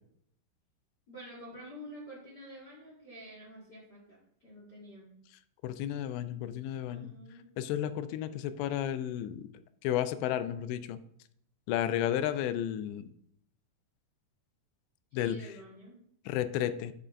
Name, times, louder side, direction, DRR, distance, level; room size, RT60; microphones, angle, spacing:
voice 1, 1.1-5.2 6.9-7.4 15.1-15.9, equal, 65° left, -5 dB, 1.0 m, -49 dB
voice 2, 5.6-7.1 7.6-9.5 9.8-11.0 11.7-13.1 15.1-15.4 16.3-16.9, left 11 dB, 85° left, 11 dB, 2.7 m, -32 dB
10.5 x 6.8 x 2.5 m, 0.70 s
omnidirectional pair, 5.0 m